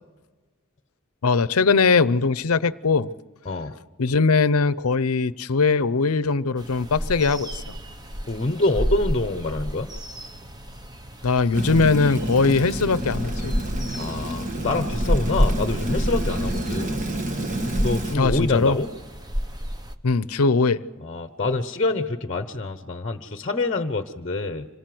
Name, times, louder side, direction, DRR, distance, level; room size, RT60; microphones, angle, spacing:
voice 1, 1.2-3.1 4.0-7.5 11.2-13.5 18.1-18.8 20.0-20.8, left 4 dB, 85° left, 16 dB, 0.7 m, -20 dB
sound 1, 6.6-20.0, equal, 20° right, 1.1 m, -30 dB
voice 2, 8.3-9.9 14.0-17.0 17.8-18.9 21.0-24.7, left 2 dB, 35° left, 9 dB, 0.9 m, -26 dB
Rain, 11.5-18.2, right 1 dB, 35° right, 1.4 m, -29 dB
26.5 x 19.0 x 7.8 m, 1.3 s
head